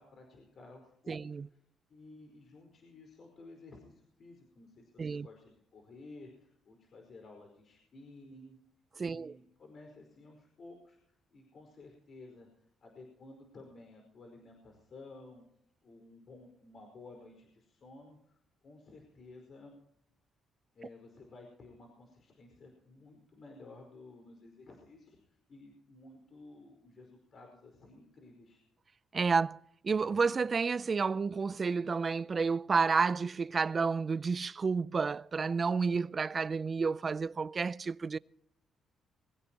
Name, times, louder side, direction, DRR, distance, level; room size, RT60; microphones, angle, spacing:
voice 1, 0.0-1.6 1.9-8.6 9.0-11.0 11.3-12.5 12.8-15.4 15.8-19.7 20.7-28.6, left 2 dB, 50° left, 4.8 m, -54 dB
voice 2, 1.1-1.5 5.0-5.3 9.0-9.4 29.1-38.2, right 5 dB, 35° right, 0.4 m, -30 dB
22.5 x 16.5 x 3.0 m
cardioid pair, 90°, 0 cm